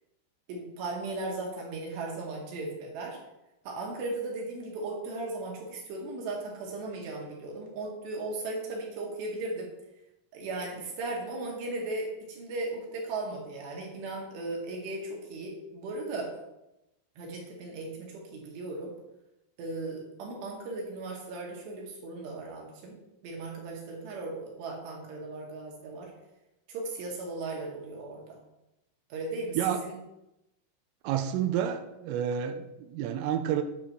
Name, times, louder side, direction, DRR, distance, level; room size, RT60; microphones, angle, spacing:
voice 1, 0.5-3.2 3.7-9.7 10.3-16.3 17.2-18.9 19.6-22.9 23.2-26.1 26.7-28.4 29.1-30.0, right 2 dB, 65° right, -1 dB, 3.8 m, -37 dB
voice 2, 31.0-33.6, right 9 dB, 85° right, 8 dB, 3.3 m, -29 dB
10.0 x 7.3 x 4.5 m, 0.92 s
omnidirectional pair, 5.9 m